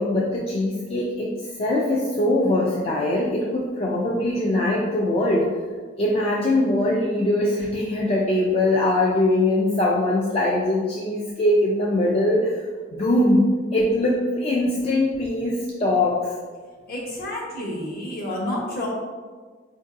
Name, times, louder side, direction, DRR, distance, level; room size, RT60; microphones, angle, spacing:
voice 1, 0.0-5.5 6.0-12.6 12.9-13.4 13.7-16.3, left 1 dB, 30° left, -5 dB, 0.4 m, -22 dB
voice 2, 16.9-18.9, left 1 dB, 50° left, -3 dB, 0.8 m, -29 dB
4.5 x 2.6 x 2.5 m, 1.5 s
head